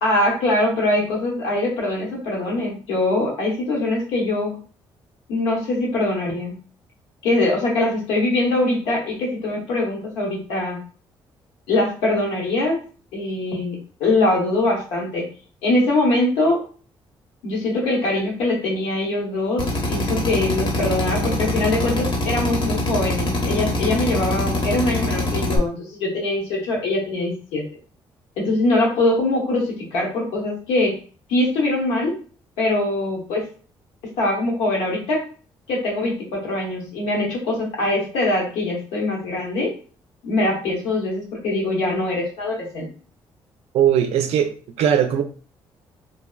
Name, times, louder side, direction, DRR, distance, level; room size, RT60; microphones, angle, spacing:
voice 1, 0.0-4.6 5.3-6.5 7.2-10.8 11.7-12.8 13.1-15.2 15.6-16.6 17.4-27.6 28.4-31.0 31.3-32.2 32.6-33.4 34.2-35.3 35.7-39.7 40.2-42.9, left 2 dB, 80° left, -2 dB, 0.9 m, -22 dB
Drill, 19.6-25.6, left 1 dB, 50° left, 0.8 m, -24 dB
voice 2, 43.7-44.5 44.8-45.2, right 9 dB, 70° right, 7 dB, 0.4 m, -18 dB
2.7 x 2.0 x 2.3 m, 0.40 s
supercardioid pair, 55°, 11 cm